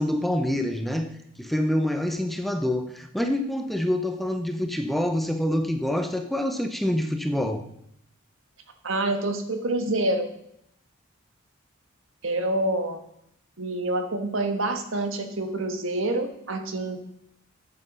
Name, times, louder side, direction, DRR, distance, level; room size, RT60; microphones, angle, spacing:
voice 1, 0.0-7.6, left 1 dB, ahead, 6 dB, 0.7 m, -26 dB
voice 2, 8.8-10.3 12.2-13.0 13.6-17.0, right 2 dB, 65° right, 6 dB, 1.6 m, -27 dB
9.6 x 7.9 x 6.2 m, 0.75 s
head